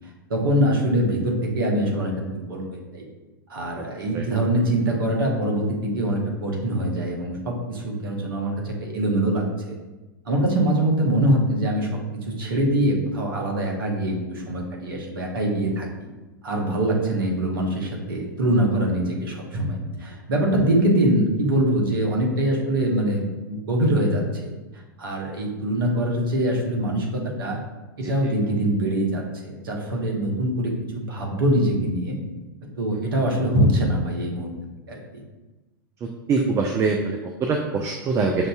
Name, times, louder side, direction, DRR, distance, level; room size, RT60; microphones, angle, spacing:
voice 1, 0.3-3.0 3.5-9.7 10.2-11.9 12.3-15.9 16.4-24.5 25.0-27.6 28.0-32.2 32.8-34.5 34.9-35.0, right 1 dB, 70° right, 0 dB, 0.9 m, -23 dB
voice 2, 36.3-38.5, right 4 dB, 25° right, 2 dB, 0.3 m, -23 dB
5.9 x 2.6 x 2.3 m, 1.1 s
figure-of-eight pair, 95°, 12 cm